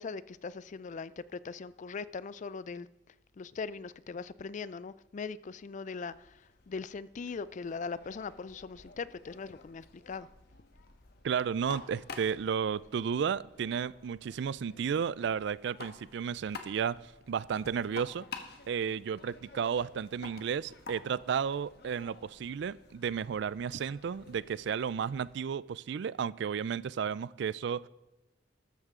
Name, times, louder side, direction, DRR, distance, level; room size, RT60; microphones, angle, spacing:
voice 1, 0.0-2.9 3.4-10.3, left 4 dB, 40° left, 0.4 m, -40 dB
sound 1, 6.1-25.3, left 4 dB, 60° left, 1.3 m, -51 dB
voice 2, 11.2-18.3 18.7-27.9, right 7 dB, 65° right, 0.4 m, -33 dB
13.0 x 12.5 x 3.7 m
head